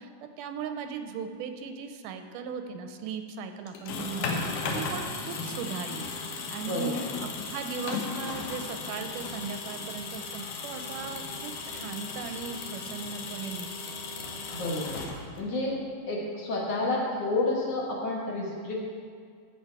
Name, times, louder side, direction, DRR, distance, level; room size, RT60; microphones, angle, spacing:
voice 1, 0.0-14.0, right 5 dB, 80° right, 7 dB, 2.1 m, -38 dB
sound 1, 3.7-15.6, left 4 dB, 75° left, 2.5 m, -36 dB
voice 2, 4.2-5.0 6.6-7.1 14.5-15.0 15.4-15.8 16.1-18.8, left 2 dB, 55° left, -3 dB, 2.2 m, -30 dB
14.5 x 7.2 x 4.7 m, 2.1 s
omnidirectional pair, 3.9 m